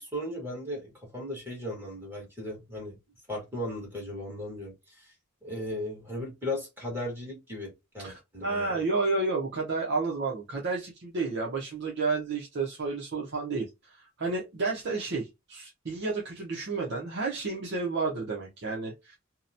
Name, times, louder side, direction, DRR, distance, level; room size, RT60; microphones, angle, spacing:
voice 1, 0.0-3.0 3.3-5.1 5.4-8.8, left 1 dB, 10° right, 1.2 m, -37 dB
voice 2, 8.0-19.2, right 3 dB, 60° right, 0.7 m, -31 dB
2.8 x 2.1 x 2.6 m
head